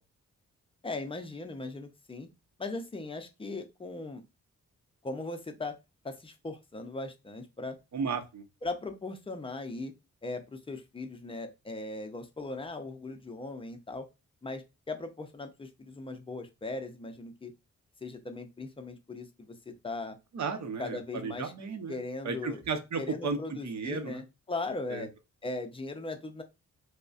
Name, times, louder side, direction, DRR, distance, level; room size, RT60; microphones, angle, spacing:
voice 1, 0.8-2.3 2.6-4.2 5.0-5.8 6.0-7.8 8.6-9.9 10.2-14.1 14.4-17.5 18.0-20.2 20.8-21.5 21.9-22.6 23.0-25.1 25.4-26.4, left 2 dB, 20° left, 7 dB, 0.4 m, -38 dB
voice 2, 7.9-8.4 20.3-22.0 22.2-23.4 23.6-24.2 24.9-25.1, right 5 dB, 65° right, 7 dB, 0.7 m, -34 dB
5.0 x 2.1 x 2.4 m, 0.25 s
wide cardioid pair, 155°, 30 cm